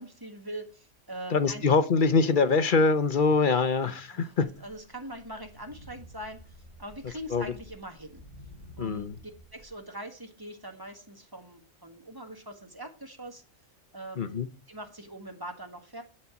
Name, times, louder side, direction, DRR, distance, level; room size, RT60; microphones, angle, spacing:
voice 1, 0.0-1.7 4.1-8.2 8.8-13.4 13.9-14.4 14.7-16.0, right 1 dB, 20° right, 4 dB, 1.5 m, -42 dB
voice 2, 1.3-4.5 7.3-7.5 8.8-9.2 14.2-14.5, left 4 dB, 45° left, 11 dB, 1.0 m, -24 dB
sound 1, 4.4-9.7, equal, 35° right, 2.7 m, -51 dB
12.0 x 4.4 x 7.0 m, 0.35 s
omnidirectional pair, 1.3 m